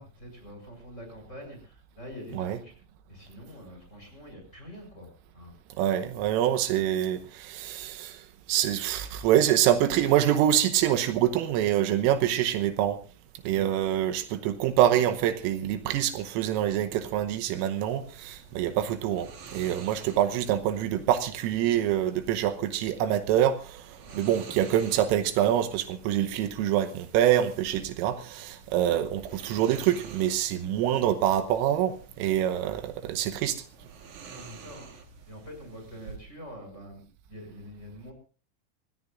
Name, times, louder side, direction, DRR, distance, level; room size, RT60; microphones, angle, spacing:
voice 1, 0.0-2.7 3.1-5.5 13.5-13.7 24.0-24.2 34.3-38.1, equal, 15° left, 5.3 m, -45 dB
voice 2, 5.8-13.0 13.5-33.6, right 11 dB, 80° right, 3.5 m, -26 dB
sound 1, 17.8-36.2, right 5 dB, 50° right, 2.7 m, -50 dB
26.0 x 17.5 x 2.5 m
omnidirectional pair, 6.0 m